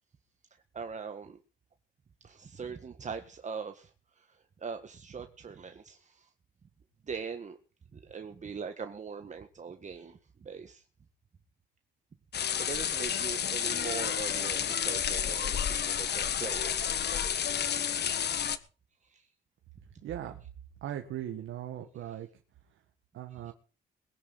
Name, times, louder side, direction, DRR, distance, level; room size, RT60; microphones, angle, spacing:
voice 1, 0.7-1.4 2.2-3.9 4.2-6.3 7.1-7.6 7.9-10.8 12.6-16.7 19.1-19.2 23.4-23.5, right 6 dB, 35° right, 6 dB, 1.6 m, -41 dB
sound 1, 12.3-18.6, left 8 dB, 55° left, 1.4 m, -31 dB
voice 2, 20.0-20.4 20.8-22.3 23.1-23.5, right 11 dB, 80° right, 4 dB, 1.8 m, -38 dB
22.0 x 10.5 x 4.1 m, 0.38 s
cardioid pair, 90°, 20 cm